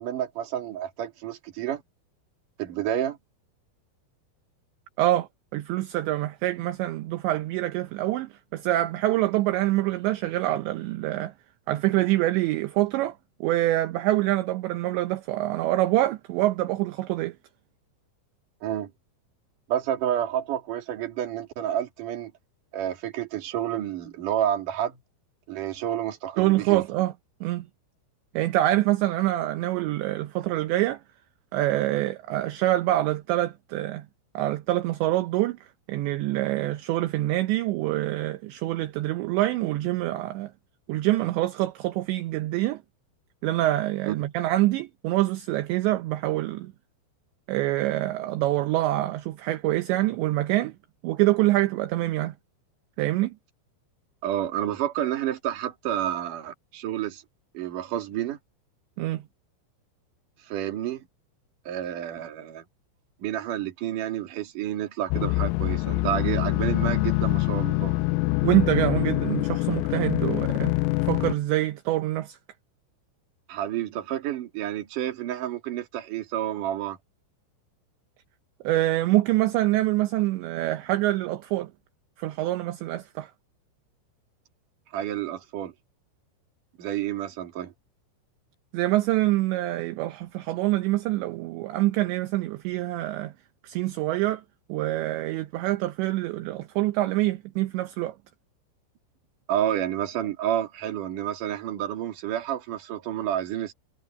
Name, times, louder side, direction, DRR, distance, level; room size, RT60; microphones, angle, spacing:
voice 1, 0.0-1.8 2.6-3.2 18.6-18.9 19.7-22.3 22.7-25.0 25.5-26.8 44.1-44.2 54.2-57.2 57.5-58.4 60.5-61.0 61.6-62.6 63.2-68.0 73.5-77.0 84.9-85.7 86.8-87.7 99.5-103.7, right 11 dB, 50° right, 3.3 m, -29 dB
voice 2, 5.0-11.3 11.7-17.3 26.4-27.1 27.4-27.7 28.3-31.0 31.5-34.1 34.3-35.6 35.9-40.5 40.9-42.8 43.4-46.7 47.5-50.7 51.0-52.3 53.0-53.3 59.0-59.2 68.4-70.8 71.0-72.4 78.6-81.7 82.2-83.3 88.7-93.3 93.6-94.4 94.7-98.2, right 16 dB, 75° right, 2.9 m, -25 dB
sound 1, 65.1-71.4, left 20 dB, 90° left, 3.3 m, -25 dB
omnidirectional pair, 5.8 m